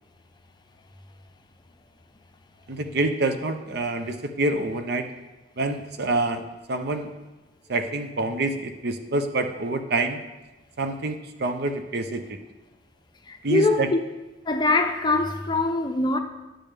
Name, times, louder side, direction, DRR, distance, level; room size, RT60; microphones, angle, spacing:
voice 1, 2.7-5.1 5.6-7.1 7.7-10.2 10.8-12.4 13.4-13.9, right 2 dB, 60° right, 0.7 m, -27 dB
voice 2, 13.3-14.0 14.5-16.2, left 3 dB, 25° left, 0.5 m, -23 dB
10.5 x 7.6 x 3.4 m
head